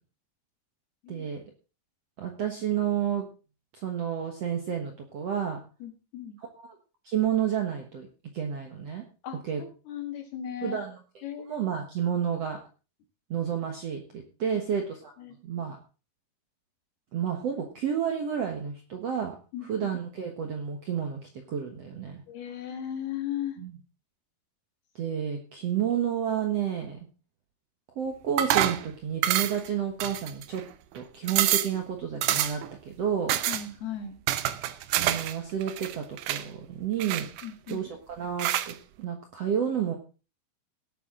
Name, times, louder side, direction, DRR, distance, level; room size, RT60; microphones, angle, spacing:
voice 1, 1.1-1.4 2.2-3.3 3.7-5.6 6.4-6.5 7.0-8.1 8.3-9.0 9.4-9.6 10.6-11.0 11.4-12.6 13.3-15.1 15.4-15.8 17.1-19.3 19.7-21.2 21.5-22.2 23.6-23.8 24.9-27.0 27.9-30.6 30.9-33.3 34.9-37.3 37.7-39.9, right 8 dB, 60° right, 3 dB, 1.7 m, -30 dB
voice 2, 5.8-6.4 9.2-9.4 9.9-10.8 11.2-11.6 14.4-14.6 15.2-15.4 19.5-19.7 22.3-23.6 33.5-34.2 37.4-37.9, left 9 dB, 70° left, 5 dB, 3.9 m, -36 dB
sound 1, 28.4-28.8 29.2-29.7 30.0-30.6 31.0-31.1 31.3-31.8 32.2-32.7 33.3-33.6 34.3-35.3 35.6-36.4 37.0-37.7 38.4-38.7, right 13 dB, 85° right, 1.8 m, -27 dB
18.0 x 8.7 x 3.8 m, 0.34 s
omnidirectional pair, 4.7 m